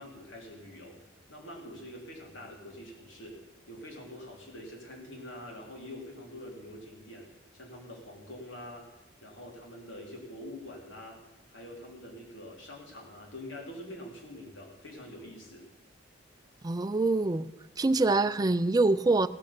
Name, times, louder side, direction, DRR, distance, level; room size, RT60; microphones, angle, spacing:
voice 1, 0.0-8.9 9.2-15.7, left 1 dB, 85° left, 0 dB, 3.4 m, -45 dB
voice 2, 16.6-17.5 17.8-19.3, right 3 dB, 20° right, 14 dB, 0.4 m, -25 dB
16.0 x 6.4 x 8.5 m, 1.0 s
head